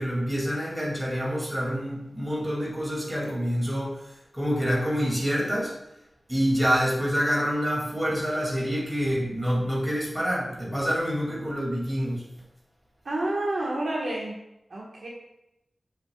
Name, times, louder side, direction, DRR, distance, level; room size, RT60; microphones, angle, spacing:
voice 1, 0.0-4.1 4.3-5.8 6.3-12.2, equal, 10° right, -4 dB, 2.5 m, -27 dB
voice 2, 13.0-14.3 14.7-15.1, right 1 dB, 70° right, -3 dB, 1.4 m, -29 dB
7.8 x 6.7 x 2.4 m, 0.86 s
wide cardioid pair, 95°, 0 cm